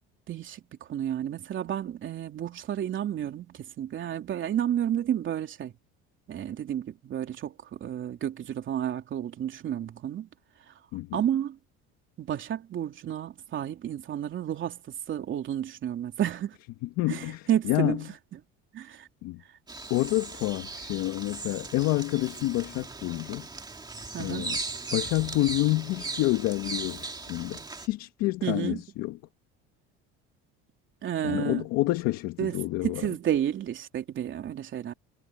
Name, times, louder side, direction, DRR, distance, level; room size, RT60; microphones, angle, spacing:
voice 1, 0.3-0.6 0.9-5.7 6.3-10.3 11.1-11.6 12.2-14.8 15.1-16.6 17.1-18.0 18.7-19.1 24.1-24.5 28.4-28.8 31.0-31.6 32.4-32.6 32.8-34.9, right 10 dB, 40° right, 3.4 m, -31 dB
voice 2, 16.8-18.0 19.2-19.4 19.9-23.5 24.2-24.6 24.9-29.2 31.2-33.1, left 18 dB, 70° left, 1.7 m, -28 dB
Bird vocalization bird call bird song, 19.7-27.9, right 3 dB, 15° right, 2.1 m, -38 dB
cardioid pair, 130°, 29 cm